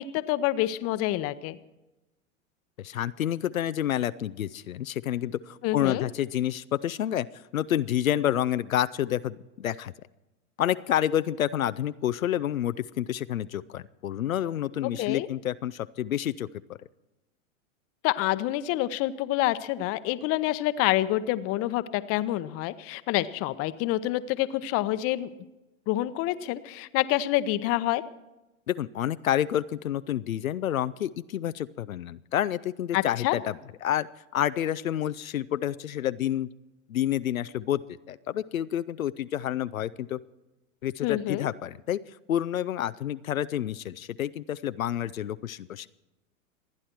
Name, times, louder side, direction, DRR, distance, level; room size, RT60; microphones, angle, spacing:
voice 1, 0.0-1.6 5.6-6.0 14.8-15.3 18.0-25.3 25.9-28.0 32.9-33.4 41.0-41.5, left 15 dB, 35° left, 14 dB, 0.8 m, -27 dB
voice 2, 2.8-7.3 7.5-9.9 10.6-16.5 28.7-33.6 33.8-34.1 34.3-36.5 36.9-37.8 38.1-40.2 40.8-42.0 42.3-45.9, left 11 dB, 85° left, 14 dB, 0.6 m, -29 dB
27.5 x 9.9 x 4.5 m, 1.0 s
hypercardioid pair, 100°, 40 cm